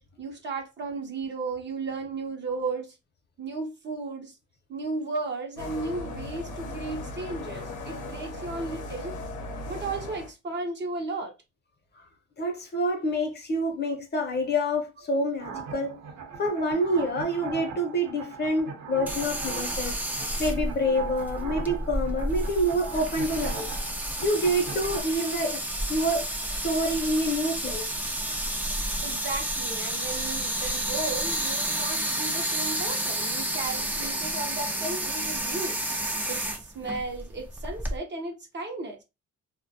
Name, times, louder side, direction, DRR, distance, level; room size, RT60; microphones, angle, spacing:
voice 1, 0.2-3.0 3.4-4.4 4.7-9.2 9.7-11.3 20.1-20.2 29.0-35.8 36.3-39.0, right 3 dB, 35° right, 0.7 m, -34 dB
sound 1, 5.6-10.3, left 2 dB, 80° left, 0.7 m, -37 dB
voice 2, 12.4-16.0 16.4-20.0 20.4-23.7 24.2-25.6 25.9-27.9, equal, 35° left, 0.7 m, -27 dB
sound 2, 15.4-25.0, right 5 dB, 65° right, 0.8 m, -40 dB
sound 3, 19.1-38.0, right 1 dB, 5° right, 0.4 m, -31 dB
2.3 x 2.2 x 2.6 m
cardioid pair, 90°, 30 cm